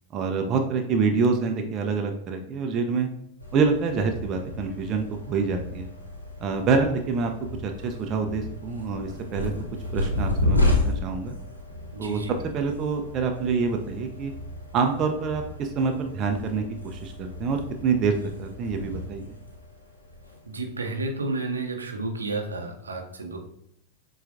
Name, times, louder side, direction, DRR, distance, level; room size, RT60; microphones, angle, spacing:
voice 1, 0.1-3.1 3.5-5.9 6.4-7.3 7.6-9.5 9.9-11.3 12.0-12.2 12.5-14.3 14.7-19.2, right 5 dB, 30° right, 4 dB, 0.5 m, -26 dB
sound 1, 3.4-20.8, left 1 dB, 85° left, 0.8 m, -32 dB
voice 2, 11.9-12.4 20.4-23.4, right 2 dB, 75° right, 2 dB, 0.6 m, -31 dB
7.1 x 2.4 x 2.5 m, 0.77 s
figure-of-eight pair, 90°, 0 cm